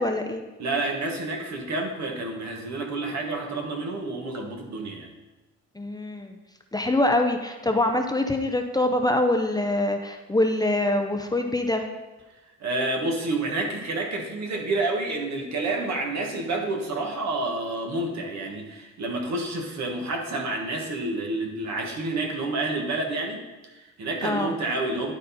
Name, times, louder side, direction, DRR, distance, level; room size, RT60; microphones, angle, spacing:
voice 1, 0.0-0.4 5.8-6.4 6.7-11.9 24.2-24.5, left 1 dB, 15° left, 4 dB, 0.6 m, -24 dB
voice 2, 0.6-5.1 12.6-25.1, right 2 dB, 65° right, 1 dB, 1.5 m, -29 dB
11.5 x 4.1 x 4.1 m, 1.1 s
cardioid pair, 90°, 30 cm